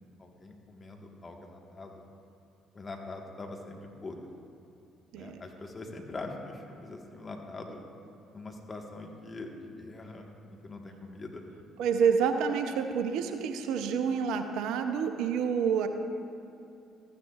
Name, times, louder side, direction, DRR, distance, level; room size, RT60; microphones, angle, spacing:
voice 1, 0.2-2.0 2.7-4.3 5.1-7.8 8.3-11.4, left 2 dB, 35° left, 2 dB, 1.4 m, -43 dB
voice 2, 11.8-15.9, right 6 dB, 70° right, 7 dB, 0.6 m, -28 dB
14.0 x 9.6 x 2.4 m, 2.6 s
hypercardioid pair, 50°, 0 cm